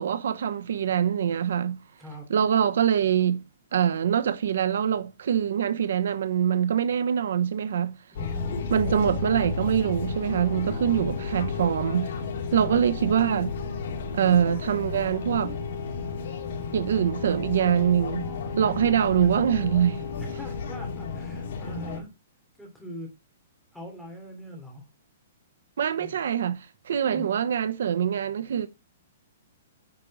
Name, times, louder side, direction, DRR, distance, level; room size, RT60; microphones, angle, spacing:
voice 1, 0.0-1.8 2.3-3.4 3.7-7.9 8.7-12.1 12.5-13.5 14.1-15.5 16.7-18.3 18.6-20.1 25.8-28.7, right 9 dB, 65° right, 0.8 m, -24 dB
voice 2, 8.1-8.7 12.5-12.8 18.6-18.9 20.2-22.1 22.6-23.1 23.7-24.9 26.0-26.2 27.1-27.3, left 1 dB, ahead, 3.0 m, -41 dB
sound 1, 8.2-22.0, left 5 dB, 50° left, 3.4 m, -33 dB
9.7 x 5.3 x 4.8 m
hypercardioid pair, 170°, 0 cm